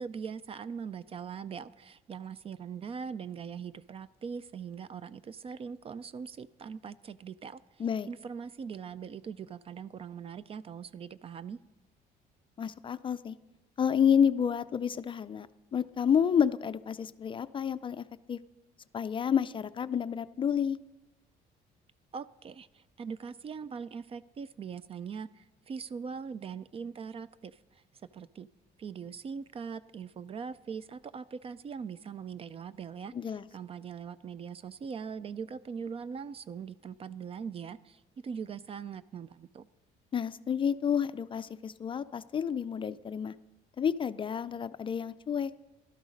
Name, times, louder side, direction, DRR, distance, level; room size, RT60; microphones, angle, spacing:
voice 1, 0.0-11.6 22.1-27.8 28.1-28.5 28.8-39.7, right 6 dB, 35° right, 18 dB, 0.4 m, -41 dB
voice 2, 12.6-13.4 13.8-18.4 18.9-20.8 33.1-33.5 40.1-43.3 43.8-45.5, left 8 dB, 30° left, 13 dB, 0.4 m, -29 dB
13.5 x 12.0 x 5.1 m, 1.0 s
cardioid pair, 110°, 17 cm